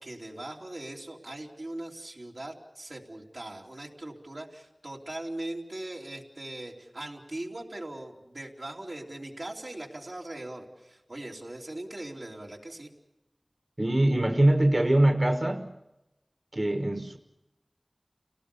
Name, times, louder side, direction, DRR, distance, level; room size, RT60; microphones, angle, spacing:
voice 1, 0.0-12.9, right 1 dB, 85° right, -1 dB, 3.2 m, -40 dB
voice 2, 13.8-15.7 16.5-17.2, right 1 dB, 50° right, 5 dB, 1.4 m, -23 dB
29.5 x 18.5 x 7.0 m, 0.98 s
wide cardioid pair, 40°, 0 cm